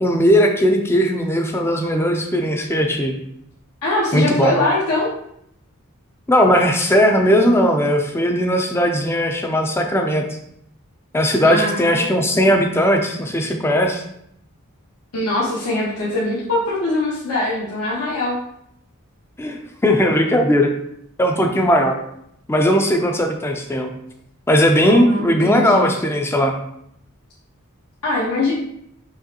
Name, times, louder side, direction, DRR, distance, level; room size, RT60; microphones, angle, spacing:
voice 1, 0.0-3.2 4.1-4.5 6.3-10.2 11.1-14.0 19.4-20.7 21.2-22.0 22.5-23.9 24.5-26.5, equal, 10° left, 4 dB, 0.4 m, -18 dB
voice 2, 3.8-5.1 11.4-12.0 15.1-18.4 24.8-25.9 28.0-28.5, left 2 dB, 80° left, -7 dB, 1.0 m, -22 dB
4.8 x 3.0 x 2.8 m, 0.74 s
head